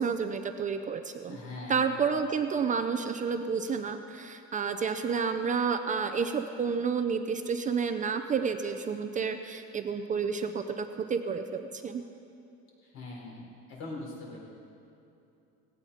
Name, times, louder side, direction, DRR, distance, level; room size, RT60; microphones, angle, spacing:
voice 1, 0.0-1.4 1.7-12.0, right 6 dB, 25° right, 7 dB, 0.5 m, -30 dB
voice 2, 1.3-1.9 12.8-13.4 13.7-14.4, left 2 dB, 45° left, -4 dB, 4.6 m, -41 dB
18.0 x 17.0 x 4.3 m, 2.7 s
cardioid pair, 165°, 31 cm